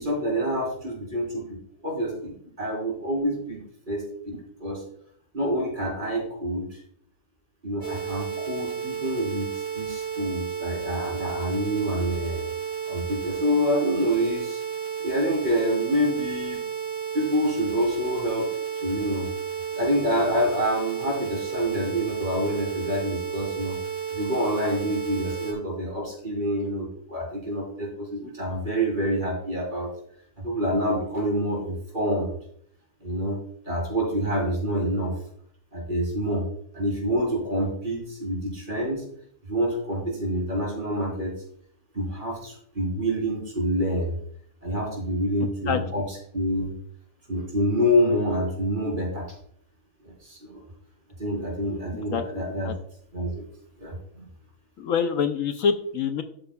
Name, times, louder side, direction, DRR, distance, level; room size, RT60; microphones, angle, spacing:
voice 1, 0.0-1.5 1.8-3.6 3.9-4.8 5.3-6.7 7.6-12.5 12.9-14.6 15.0-16.6 17.1-18.5 18.8-19.3 19.7-23.8 24.1-29.9 30.4-32.4 33.0-35.1 35.7-36.4 36.7-39.0 39.5-41.3 41.9-44.2 44.6-46.7 47.3-49.3 50.0-50.6 51.2-52.7 53.1-53.4 53.8-54.0, equal, 35° right, -2 dB, 4.3 m, -27 dB
sound 1, 7.8-25.5, right 7 dB, 70° right, 4.8 m, -32 dB
voice 2, 54.8-56.2, left 6 dB, 70° left, 8 dB, 1.1 m, -25 dB
12.5 x 8.8 x 2.4 m, 0.65 s
omnidirectional pair, 1.5 m